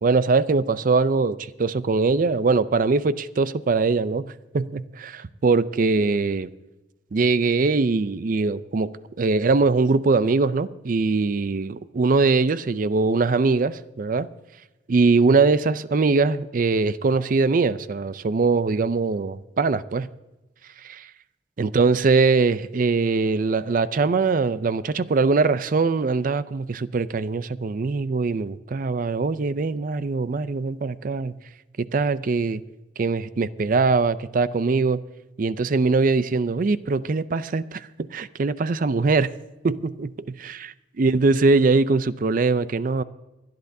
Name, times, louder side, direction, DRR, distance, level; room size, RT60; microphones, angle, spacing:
voice 1, 0.0-6.5 7.1-14.3 14.9-20.1 20.8-21.1 21.6-31.3 31.8-32.6 33.0-35.0 35.4-39.3 39.6-40.1 41.0-43.0, right 4 dB, 50° right, 0.5 m, -22 dB
27.5 x 10.5 x 2.7 m
head